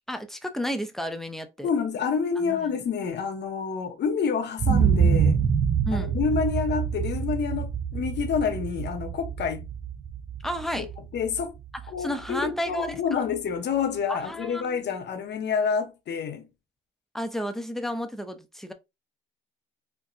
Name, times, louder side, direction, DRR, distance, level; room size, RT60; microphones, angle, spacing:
voice 1, 0.1-1.7 2.4-2.7 5.9-6.2 10.4-10.9 12.0-13.2 14.1-14.9 17.1-18.7, equal, ahead, 0.6 m, -32 dB
voice 2, 1.6-5.4 5.9-9.7 10.8-10.9 11.1-11.5 11.9-16.5, left 6 dB, 60° left, 0.8 m, -28 dB
sound 1, 4.6-12.5 12.9-13.0, right 7 dB, 40° right, 0.4 m, -26 dB
4.5 x 2.2 x 2.5 m
cardioid pair, 90°, 20 cm